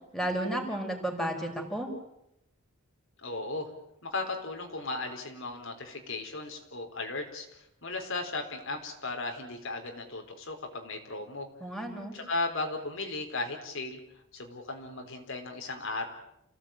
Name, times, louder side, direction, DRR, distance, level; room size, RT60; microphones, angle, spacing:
voice 1, 0.1-1.9 11.6-12.1, right 1 dB, ahead, 2 dB, 5.2 m, -32 dB
voice 2, 3.2-3.7 4.0-11.5 12.1-14.0 14.3-16.1, left 3 dB, 65° left, 3 dB, 4.5 m, -36 dB
29.5 x 17.5 x 9.2 m, 0.82 s
head